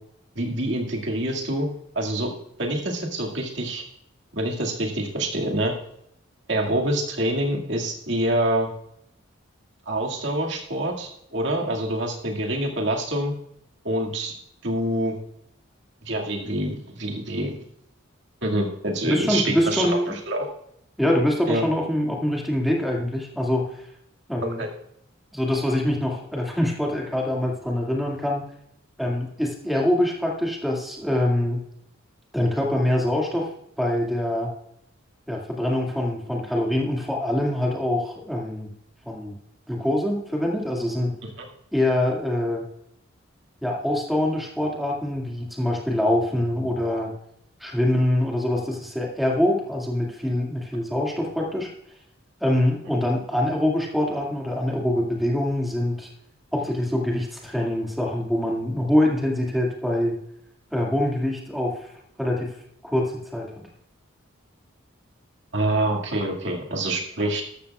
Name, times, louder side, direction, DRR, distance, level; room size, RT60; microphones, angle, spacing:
voice 1, 0.4-1.7 1.9-2.3 2.6-3.8 4.4-5.7 6.5-8.7 9.9-13.3 13.8-14.3 14.6-15.2 16.0-17.6 18.4-20.5 21.5-21.6 24.6-24.7 41.4-41.5 65.5-67.4, right 1 dB, 60° right, 1 dB, 2.1 m, -26 dB
voice 2, 19.0-20.1 21.0-23.7 24.3-24.6 25.3-28.4 29.0-31.6 32.3-33.5 33.8-34.5 35.3-38.7 39.1-39.4 39.7-41.1 41.7-42.7 43.6-47.1 47.6-51.7 52.4-56.1 56.5-60.2 60.7-61.9 62.2-62.5 62.8-63.6, left 1 dB, ahead, -1 dB, 2.1 m, -24 dB
13.0 x 13.0 x 2.4 m, 0.74 s
head